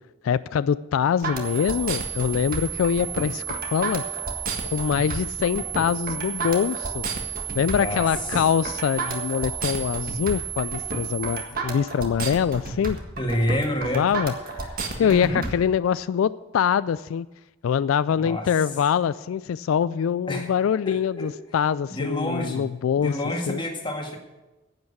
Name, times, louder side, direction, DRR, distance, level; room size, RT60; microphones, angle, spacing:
voice 1, 0.2-4.0 4.7-7.1 7.5-13.0 13.9-14.3 14.6-17.3 17.6-23.2 23.5-23.6, left 8 dB, 90° left, 17 dB, 0.3 m, -24 dB
sound 1, 1.2-15.5, right 3 dB, 45° right, 1.7 m, -31 dB
sound 2, 1.4-11.4, right 12 dB, 25° right, 2.7 m, -34 dB
voice 2, 7.7-8.1 13.2-14.1 15.0-15.4 18.2-18.5 20.3-20.5 20.9-21.3 21.9-22.7 23.0-24.2, equal, 25° left, 2 dB, 1.7 m, -28 dB
10.5 x 8.8 x 8.2 m, 1.1 s
head